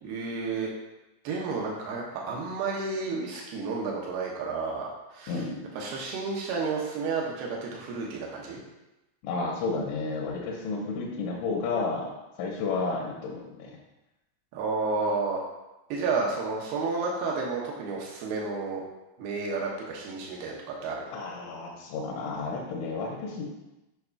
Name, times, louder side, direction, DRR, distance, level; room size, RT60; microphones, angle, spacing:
voice 1, 0.0-0.7 1.2-5.4 5.8-8.6 14.5-15.4 15.9-18.8 19.2-21.1, right 4 dB, 90° right, -2 dB, 2.2 m, -31 dB
voice 2, 5.3-5.6 9.2-12.1 12.4-13.8 21.1-23.4, left 4 dB, 80° left, -3 dB, 3.3 m, -31 dB
9.2 x 5.5 x 2.4 m, 0.98 s
omnidirectional pair, 5.7 m